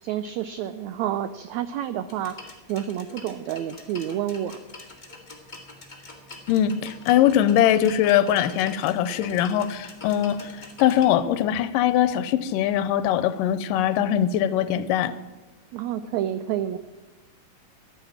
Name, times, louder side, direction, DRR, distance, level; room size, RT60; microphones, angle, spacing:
voice 1, 0.0-2.4 2.7-4.6 15.7-16.8, right 11 dB, 85° right, 12 dB, 1.6 m, -29 dB
sound 1, 2.1-11.1, left 2 dB, 20° left, 1.3 m, -45 dB
voice 2, 6.5-15.1, left 10 dB, 90° left, 13 dB, 2.3 m, -22 dB
14.0 x 10.0 x 7.2 m, 1.1 s
omnidirectional pair, 3.8 m